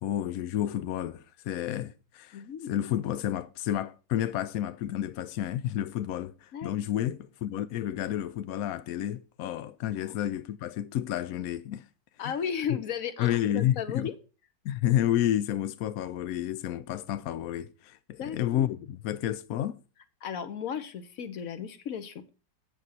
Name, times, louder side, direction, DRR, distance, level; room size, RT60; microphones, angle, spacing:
voice 1, 0.0-11.8 12.2-12.3 12.7-12.8 13.2-14.1 14.6-19.8, left 12 dB, 75° left, 0.8 m, -30 dB
voice 2, 2.3-2.7 6.5-6.7 7.0-7.1 10.0-10.2 12.2-14.1 18.2-18.7 20.2-22.2, left 7 dB, 55° left, 1.2 m, -35 dB
7.8 x 7.5 x 4.0 m
omnidirectional pair, 2.0 m